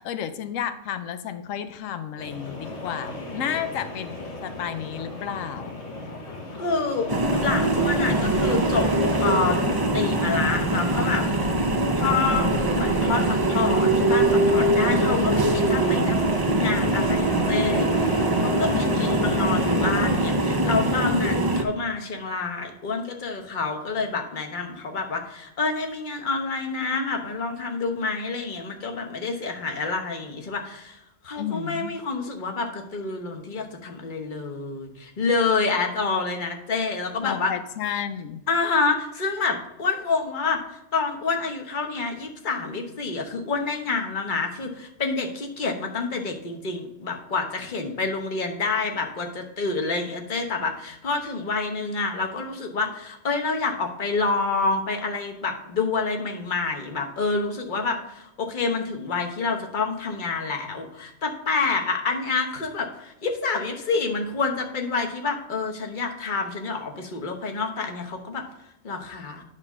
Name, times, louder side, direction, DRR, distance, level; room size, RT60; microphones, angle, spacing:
voice 1, 0.0-4.2 4.4-5.7 18.7-19.4 31.4-31.9 37.2-38.4, left 9 dB, 90° left, 10 dB, 1.0 m, -32 dB
sound 1, 2.2-20.5, left 1 dB, 60° left, 1.6 m, -34 dB
voice 2, 6.6-7.1 7.4-8.9 9.2-9.6 9.9-11.5 12.0-31.0 31.2-37.5 38.5-40.6 40.9-68.4 68.8-69.4, left 4 dB, 40° left, 3 dB, 1.2 m, -28 dB
sound 2, 7.1-21.6, right 1 dB, 25° right, 0.6 m, -22 dB
9.7 x 4.2 x 6.0 m, 0.89 s
omnidirectional pair, 1.3 m